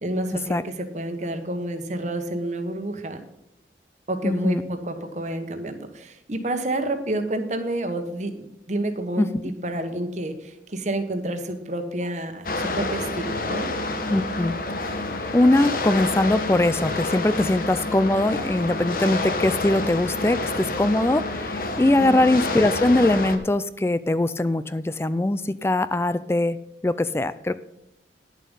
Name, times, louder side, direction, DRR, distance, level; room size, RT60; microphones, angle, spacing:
voice 1, 0.0-3.2 4.1-13.7 22.0-22.2, right 1 dB, 40° right, 7 dB, 1.3 m, -29 dB
voice 2, 4.2-4.6 9.2-9.3 14.1-14.6 14.9-26.6 26.8-27.6, left 1 dB, 15° left, 15 dB, 0.3 m, -22 dB
sound 1, 12.4-23.4, left 2 dB, 50° left, 1.1 m, -28 dB
10.5 x 7.3 x 5.4 m, 0.86 s
head